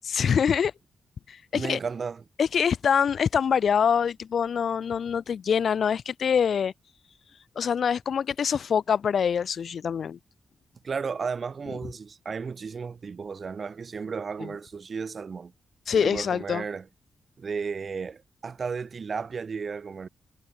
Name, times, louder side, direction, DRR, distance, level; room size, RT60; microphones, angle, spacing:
voice 1, 0.0-0.7 1.3-1.8 2.4-6.7 7.5-10.2 14.4-14.5 15.9-16.7, left 7 dB, 65° left, 3.3 m, -25 dB
voice 2, 1.5-2.2 10.8-15.5 15.9-16.8 17.4-20.1, right 5 dB, 45° right, 2.9 m, -34 dB
wide cardioid pair, 130°, 0 cm